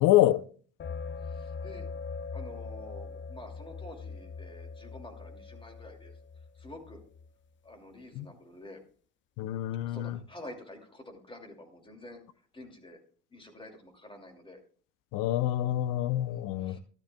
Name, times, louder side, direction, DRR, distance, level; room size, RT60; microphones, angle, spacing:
voice 1, 0.0-0.4 8.2-8.3 9.4-10.2 15.1-16.8, left 14 dB, 75° left, 0.7 m, -26 dB
sound 1, 0.8-7.3, left 4 dB, 35° left, 0.9 m, -41 dB
voice 2, 1.2-1.9 2.3-6.2 6.5-7.0 7.6-8.8 9.8-13.0 13.3-14.6 16.2-16.8, left 1 dB, 15° left, 2.6 m, -48 dB
13.5 x 12.5 x 2.3 m
supercardioid pair, 90°, 33 cm